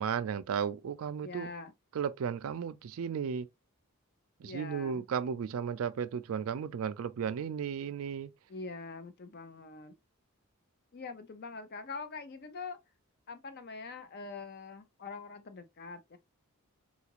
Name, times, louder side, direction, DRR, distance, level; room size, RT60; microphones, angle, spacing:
voice 1, 0.0-1.5 1.9-3.5 4.4-8.3, right 7 dB, 70° right, 0.3 m, -34 dB
voice 2, 1.2-1.7 4.4-5.0 8.5-10.0 10.9-12.8 13.3-16.2, left 4 dB, 45° left, 0.5 m, -44 dB
3.8 x 2.4 x 2.8 m
head